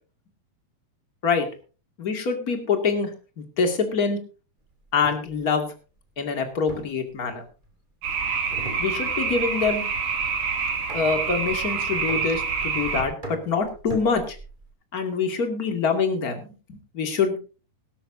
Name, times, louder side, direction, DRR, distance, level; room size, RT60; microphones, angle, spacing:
voice 1, 2.0-3.1 3.4-4.2 4.9-5.7 6.2-7.4 8.8-9.8 10.9-14.4 14.9-17.3, left 5 dB, 30° left, 5 dB, 1.9 m, -25 dB
sound 1, 4.9-5.3 6.7-7.7 8.5-9.3 9.6-10.0 10.9-11.4 12.1-12.7 13.2-14.7, right 1 dB, 15° right, 2.5 m, -39 dB
sound 2, 8.0-13.0, right 5 dB, 55° right, 3.5 m, -27 dB
18.5 x 13.0 x 2.7 m, 0.35 s
omnidirectional pair, 4.6 m